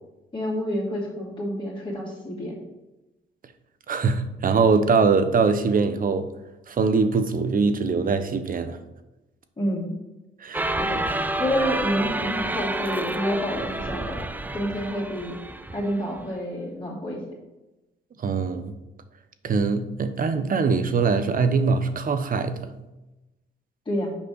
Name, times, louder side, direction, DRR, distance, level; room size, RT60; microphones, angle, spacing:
voice 1, 0.3-2.6 9.6-9.9 10.8-11.0 11.4-14.2 14.5-15.3 15.7-17.2 23.9-24.1, equal, 25° left, -5 dB, 2.8 m, -28 dB
voice 2, 3.9-6.3 6.7-8.8 10.4-10.8 18.2-18.7 19.4-22.7, right 4 dB, 45° right, 10 dB, 1.0 m, -22 dB
sound 1, 10.5-16.3, right 2 dB, 10° right, 0.5 m, -29 dB
6.9 x 5.2 x 6.5 m, 1.0 s
cardioid pair, 90°, 20 cm